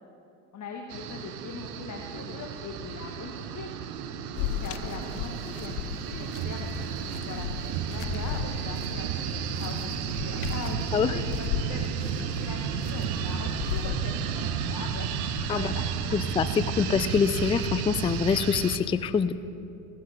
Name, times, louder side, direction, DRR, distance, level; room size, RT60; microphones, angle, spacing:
voice 1, 0.5-3.7 4.2-7.5 7.8-16.3 16.6-16.7, left 5 dB, 40° left, 2 dB, 1.6 m, -41 dB
sound 1, 0.9-18.8, right 7 dB, 70° right, 1.2 m, -33 dB
sound 2, 4.4-14.0, left 11 dB, 80° left, 0.7 m, -37 dB
sound 3, 6.3-17.3, right 6 dB, 45° right, 0.8 m, -38 dB
voice 2, 16.1-19.3, left 6 dB, 15° left, 13 dB, 0.4 m, -25 dB
17.0 x 14.0 x 5.0 m, 2.7 s
hypercardioid pair, 80°, 46 cm